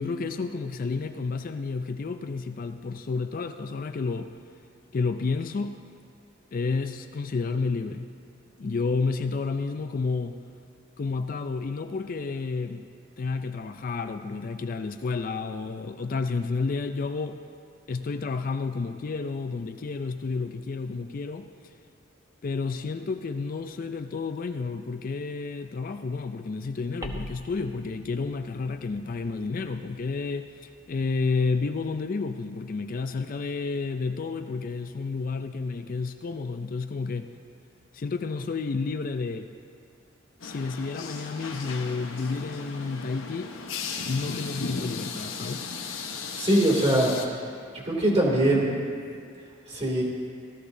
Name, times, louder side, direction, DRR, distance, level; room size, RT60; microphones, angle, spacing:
voice 1, 0.0-4.3 4.9-5.8 6.5-8.1 8.6-10.4 11.0-12.8 13.2-17.4 17.9-21.5 22.4-37.3 37.9-39.5 40.4-43.6 44.1-45.7, left 4 dB, 45° left, 8 dB, 0.4 m, -30 dB
sound 1, 27.0-31.9, right 1 dB, 15° right, 0.9 m, -46 dB
sound 2, 40.4-47.3, left 4 dB, 85° left, 1.0 m, -36 dB
voice 2, 46.4-47.1 47.8-48.8 49.7-50.0, right 1 dB, 30° right, -3 dB, 2.6 m, -22 dB
17.5 x 13.0 x 2.7 m, 2.3 s
head